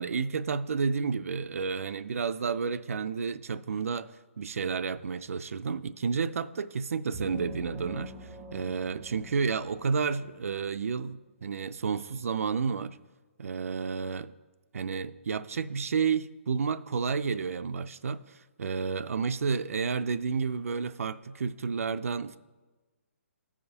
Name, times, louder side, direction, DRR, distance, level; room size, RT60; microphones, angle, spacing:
voice 1, 0.0-4.1 4.4-8.1 8.5-13.0 13.4-14.3 14.7-18.2 18.6-22.4, right 5 dB, 80° right, 0.4 m, -31 dB
sound 1, 7.1-10.7, equal, 10° right, 0.4 m, -46 dB
14.5 x 4.9 x 2.8 m
hypercardioid pair, 175°, 7 cm